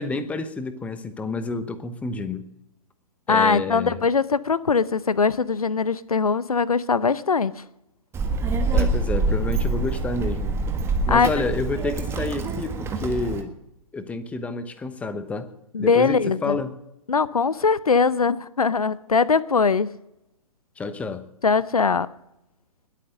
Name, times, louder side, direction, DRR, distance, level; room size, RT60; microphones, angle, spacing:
voice 1, 0.0-2.4 3.3-4.0 8.7-10.5 11.0-13.6 13.9-15.5 15.8-16.8 20.8-21.3, left 3 dB, 5° left, 12 dB, 0.9 m, -29 dB
voice 2, 3.3-7.5 11.1-11.3 15.7-16.6 17.1-19.9 21.4-22.1, left 5 dB, 75° left, 19 dB, 0.7 m, -21 dB
Child speech kid speaking, 8.1-13.4, right 3 dB, 15° right, 1.6 m, -25 dB
21.0 x 8.6 x 6.5 m, 0.87 s
figure-of-eight pair, 120°, 19 cm